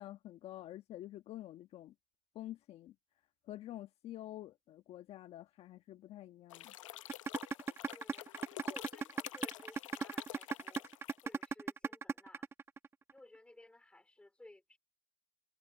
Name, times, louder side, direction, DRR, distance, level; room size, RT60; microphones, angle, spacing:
voice 1, 0.0-1.9 2.3-2.9 3.4-6.7, left 14 dB, 40° left, 1.3 m, -48 dB
sound 1, 6.5-11.5, left 14 dB, 80° left, 1.0 m, -49 dB
sound 2, 7.1-13.1, right 5 dB, 15° right, 1.0 m, -36 dB
voice 2, 7.9-10.9 11.2-12.5 13.1-14.8, left 2 dB, 5° left, 4.4 m, -58 dB
hypercardioid pair, 115°, 16 cm